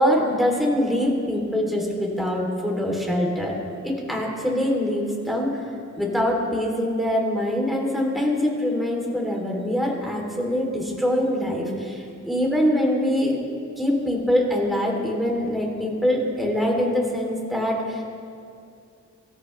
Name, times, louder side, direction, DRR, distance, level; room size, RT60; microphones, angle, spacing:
voice 1, 0.0-3.5 3.8-5.6 6.0-13.4 13.8-18.0, equal, ahead, -2 dB, 3.0 m, -24 dB
24.0 x 13.5 x 3.2 m, 2.5 s
wide cardioid pair, 100°, 29 cm